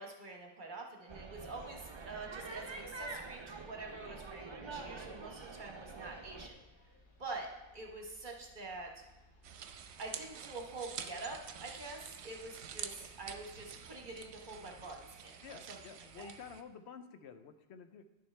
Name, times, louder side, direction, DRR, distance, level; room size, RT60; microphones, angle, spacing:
voice 1, 0.0-6.6 7.2-7.5 7.7-8.9 10.0-15.8 16.2-16.3, right 3 dB, 45° right, 1 dB, 1.2 m, -46 dB
sound 1, 1.1-6.5, right 3 dB, 30° right, 0.6 m, -46 dB
sound 2, 3.4-15.2, left 1 dB, 50° left, 1.8 m, -64 dB
sound 3, 9.4-16.6, right 8 dB, 75° right, 0.9 m, -48 dB
voice 2, 15.4-18.0, left 6 dB, 75° left, 9 dB, 0.9 m, -51 dB
10.5 x 7.1 x 3.3 m, 0.97 s
omnidirectional pair, 1.1 m